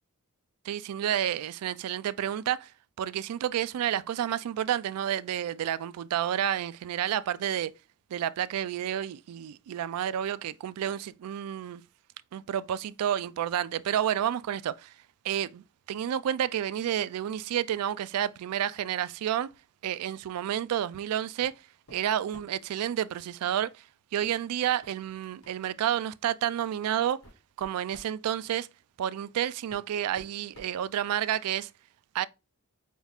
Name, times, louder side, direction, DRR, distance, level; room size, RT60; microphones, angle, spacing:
voice 1, 0.7-2.7 3.0-7.7 8.1-11.8 12.3-14.9 15.2-19.5 19.8-21.5 21.9-23.7 24.1-27.2 27.6-28.7 29.0-31.7 32.1-32.3, right 10 dB, 75° right, 0.3 m, -30 dB
sound 1, 21.4-21.6 21.9-22.7 24.2-24.4 24.8-24.9 25.4-25.6 26.4-26.5 27.0-28.2 29.2-29.3 29.7-31.4, equal, 70° left, 1.9 m, -54 dB
5.2 x 2.4 x 3.4 m
head